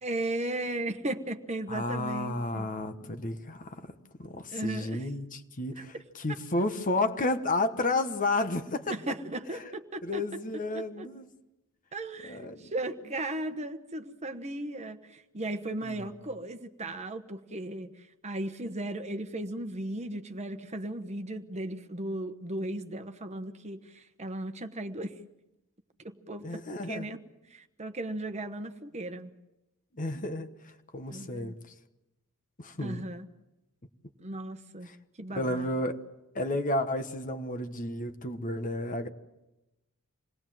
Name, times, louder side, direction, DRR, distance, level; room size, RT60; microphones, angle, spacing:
voice 1, 0.0-2.7 4.5-5.1 8.9-10.2 10.7-11.1 11.9-25.1 26.0-26.6 26.9-27.2 27.5-29.3 31.1-31.5 32.8-33.3 34.2-34.9 35.2-35.7, right 1 dB, 30° right, 1.2 m, -36 dB
voice 2, 1.7-3.9 4.2-9.0 9.5-9.7 10.0-11.3 12.2-12.7 15.8-16.1 26.4-27.1 29.9-31.6 32.6-33.0 34.8-35.0 35.3-36.0 36.3-39.1, left 2 dB, 35° left, 1.4 m, -32 dB
27.5 x 19.5 x 7.7 m
head